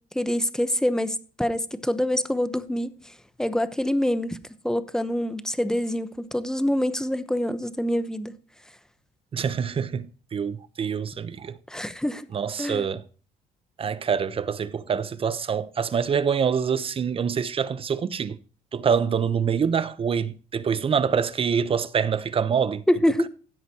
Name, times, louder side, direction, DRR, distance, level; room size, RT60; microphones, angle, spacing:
voice 1, 0.1-4.4 4.6-8.4 11.7-12.2 12.6-12.9 22.9-23.3, left 1 dB, 5° left, 0.9 m, -26 dB
voice 2, 9.3-11.6 12.3-13.0 13.8-18.4 18.7-22.8, right 7 dB, 35° right, 0.8 m, -25 dB
16.0 x 7.9 x 2.9 m
cardioid pair, 110°, 17 cm